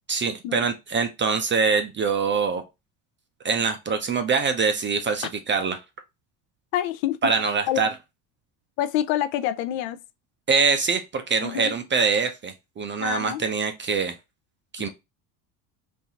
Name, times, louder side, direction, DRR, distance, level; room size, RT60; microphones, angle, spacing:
voice 1, 0.1-2.6 3.4-5.8 7.2-7.9 10.5-14.1 14.7-14.9, right 5 dB, 25° right, 0.4 m, -24 dB
voice 2, 6.7-7.3 7.7-7.9 8.8-10.0 11.4-11.7 13.0-13.4, left 12 dB, 70° left, 0.5 m, -27 dB
3.9 x 2.5 x 2.8 m
cardioid pair, 115°, 48 cm